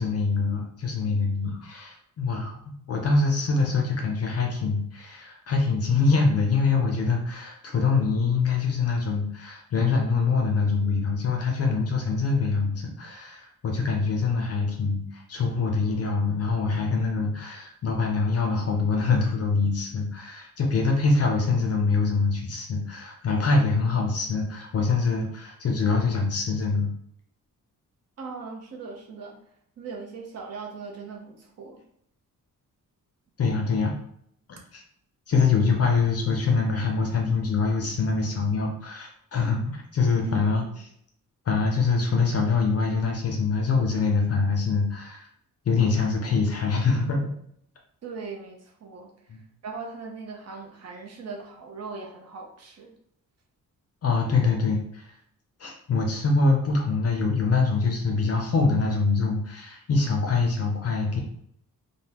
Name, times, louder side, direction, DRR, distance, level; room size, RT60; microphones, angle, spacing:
voice 1, 0.0-26.9 33.4-33.9 34.7-34.8 35.3-40.6 41.5-45.3 45.7-47.2 49.3-49.4 54.0-55.1 55.6-61.2, left 4 dB, 45° left, 2 dB, 0.5 m, -24 dB
voice 2, 28.2-29.4 29.8-31.8 40.2-40.7 48.0-49.1 49.6-53.0, right 4 dB, 50° right, 0 dB, 0.7 m, -39 dB
3.4 x 2.1 x 2.8 m, 0.69 s
wide cardioid pair, 175°, 34 cm